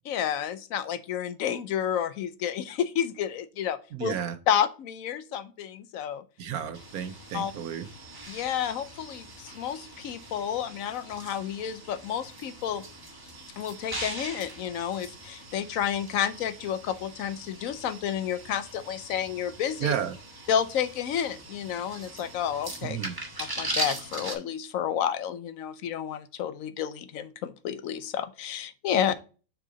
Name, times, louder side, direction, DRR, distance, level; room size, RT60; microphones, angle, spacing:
voice 1, 0.1-4.1 4.5-6.2 7.3-7.5 8.3-12.8 13.6-19.9 20.5-23.0 23.4-29.1, left 9 dB, 70° left, 13 dB, 1.0 m, -30 dB
voice 2, 3.9-4.3 6.4-7.9 19.8-20.2 22.8-23.1 29.1-29.2, right 9 dB, 85° right, 10 dB, 1.3 m, -32 dB
sound 1, 6.7-24.3, right 2 dB, 15° right, 1.2 m, -40 dB
6.2 x 4.8 x 3.8 m, 0.35 s
omnidirectional pair, 1.5 m